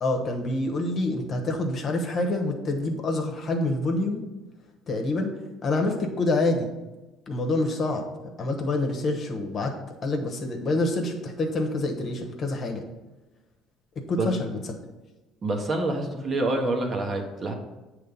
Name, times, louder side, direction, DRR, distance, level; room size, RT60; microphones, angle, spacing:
voice 1, 0.0-4.2 4.9-5.3 5.6-6.7 7.3-8.1 8.4-9.7 10.0-12.8 13.9-14.6, left 2 dB, 50° left, 3 dB, 1.1 m, -27 dB
voice 2, 15.4-17.5, right 2 dB, 40° right, 3 dB, 1.2 m, -27 dB
7.8 x 3.2 x 5.3 m, 1.1 s
hypercardioid pair, 60°, 0 cm